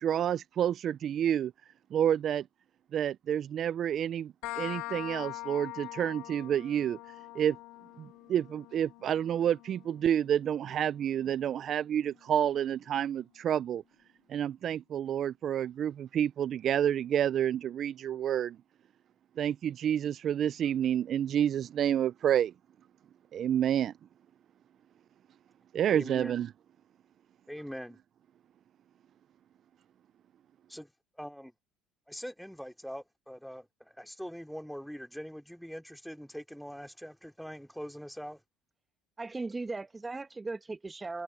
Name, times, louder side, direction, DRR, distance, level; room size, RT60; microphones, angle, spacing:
voice 1, 0.0-1.5 1.9-2.5 2.9-7.0 7.3-7.6 8.0-13.8 14.3-18.6 19.4-22.5 23.3-23.9 25.7-26.5, right 10 dB, 55° right, 0.6 m, -29 dB
sound 1, 4.4-11.8, left 20 dB, 75° left, 2.8 m, -44 dB
voice 2, 25.9-26.4 27.5-28.0 30.7-30.9 31.2-31.5 32.1-38.4, equal, ahead, 3.1 m, -43 dB
voice 3, 39.2-41.2, right 3 dB, 20° right, 1.4 m, -37 dB
supercardioid pair, 75°, 0 cm